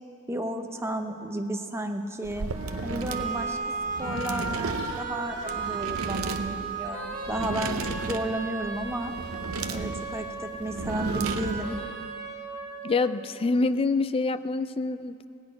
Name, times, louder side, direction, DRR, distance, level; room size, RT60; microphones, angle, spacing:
voice 1, 0.3-2.5 2.8-3.6 4.0-9.1 9.7-11.8, right 1 dB, 10° right, 5 dB, 0.7 m, -33 dB
sound 1, 2.2-11.8, right 4 dB, 70° right, 0.7 m, -35 dB
sound 2, 2.5-13.5, right 4 dB, 40° right, 1.6 m, -35 dB
voice 2, 12.8-15.3, left 3 dB, 25° left, 13 dB, 0.3 m, -26 dB
17.0 x 6.2 x 9.6 m, 2.7 s
head